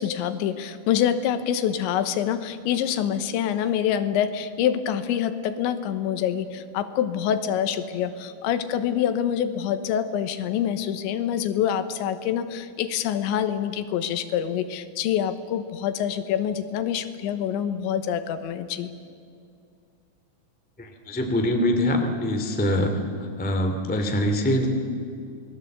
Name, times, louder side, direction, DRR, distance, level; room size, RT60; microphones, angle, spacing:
voice 1, 0.0-18.9, left 9 dB, 80° left, 10 dB, 3.3 m, -26 dB
voice 2, 21.1-22.9 23.4-24.7, left 1 dB, 10° left, 4 dB, 0.4 m, -23 dB
27.5 x 20.5 x 8.0 m, 2.4 s
omnidirectional pair, 5.3 m